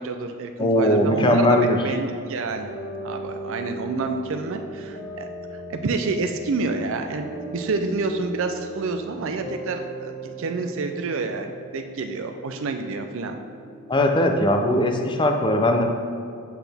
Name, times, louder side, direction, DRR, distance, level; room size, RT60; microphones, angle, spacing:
voice 1, 0.0-1.5 1.8-2.7 3.0-5.3 5.7-13.4, right 3 dB, 60° right, 5 dB, 0.5 m, -28 dB
voice 2, 0.6-1.8 13.9-15.8, left 1 dB, 20° left, 4 dB, 0.6 m, -19 dB
sound 1, 2.5-15.2, right 2 dB, 40° left, 1.4 m, -38 dB
8.0 x 5.9 x 3.5 m, 2.4 s
head